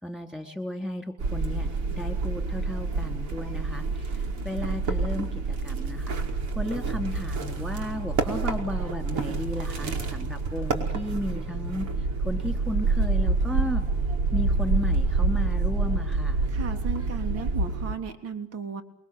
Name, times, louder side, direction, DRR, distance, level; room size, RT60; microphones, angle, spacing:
voice 1, 0.0-5.3 5.6-6.2 6.5-11.9 12.2-13.8 14.3-16.4, left 1 dB, ahead, 5 dB, 4.3 m, -34 dB
sound 1, 1.2-17.9, right 3 dB, 75° right, 5.1 m, -27 dB
voice 2, 16.5-18.8, right 6 dB, 55° right, 7 dB, 3.3 m, -35 dB
29.0 x 23.0 x 8.0 m, 0.76 s
cardioid pair, 125°, 29 cm